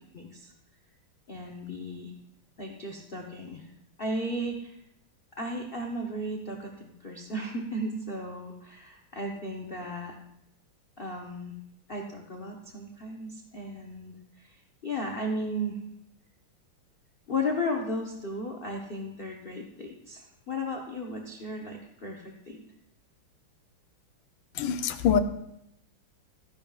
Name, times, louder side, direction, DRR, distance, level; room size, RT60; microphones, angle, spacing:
voice 1, 0.1-0.5 1.3-2.1 2.6-3.6 4.0-4.7 5.4-10.1 11.0-11.5 11.9-14.6 14.8-15.8 17.3-22.6, left 1 dB, 55° left, 0 dB, 0.6 m, -35 dB
voice 2, 24.6-25.2, left 7 dB, 75° left, 9 dB, 1.3 m, -24 dB
14.0 x 10.5 x 2.4 m, 0.80 s
omnidirectional pair, 2.4 m